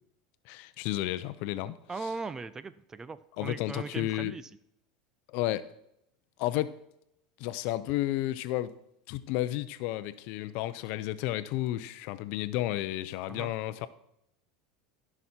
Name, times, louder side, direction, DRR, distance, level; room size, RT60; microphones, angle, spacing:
voice 1, 0.5-1.7 3.4-4.3 5.3-5.7 6.4-6.8 7.4-8.7 9.1-13.9, left 15 dB, 60° left, 0.6 m, -32 dB
voice 2, 1.9-4.6 13.3-13.5, right 4 dB, 15° right, 0.5 m, -39 dB
14.5 x 6.1 x 4.4 m
supercardioid pair, 120°, 3 cm